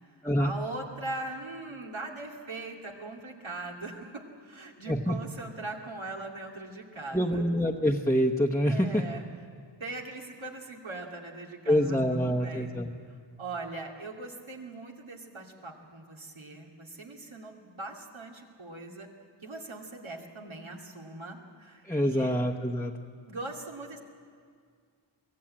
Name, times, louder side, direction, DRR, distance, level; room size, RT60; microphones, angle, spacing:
voice 1, 0.4-7.5 8.6-9.2 9.8-12.7 13.4-19.1 19.4-22.3 23.3-24.0, right 2 dB, 80° right, 1 dB, 2.5 m, -40 dB
voice 2, 4.8-5.2 7.1-9.0 11.7-12.9 21.8-22.9, equal, 5° left, 1 dB, 1.0 m, -26 dB
23.5 x 16.0 x 8.7 m, 2.1 s
wide cardioid pair, 65°, 47 cm